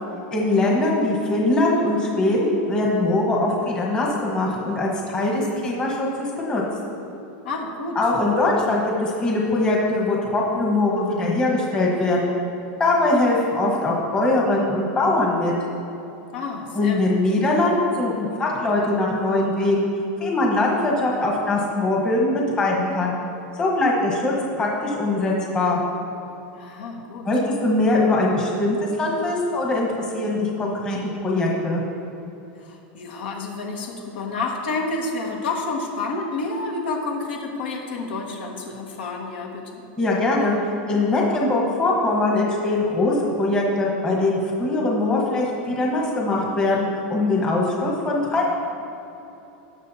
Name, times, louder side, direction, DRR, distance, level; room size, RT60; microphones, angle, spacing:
voice 1, 0.3-6.6 7.9-12.3 12.8-15.5 16.7-19.9 20.2-23.1 23.6-25.8 27.2-31.8 40.0-40.6 40.9-48.5, left 2 dB, 15° left, -3 dB, 1.2 m, -22 dB
voice 2, 7.4-8.0 16.3-17.2 26.5-27.3 32.6-39.8, left 3 dB, 80° left, 0 dB, 1.6 m, -29 dB
19.0 x 6.3 x 2.8 m, 3.0 s
supercardioid pair, 175°, 5 cm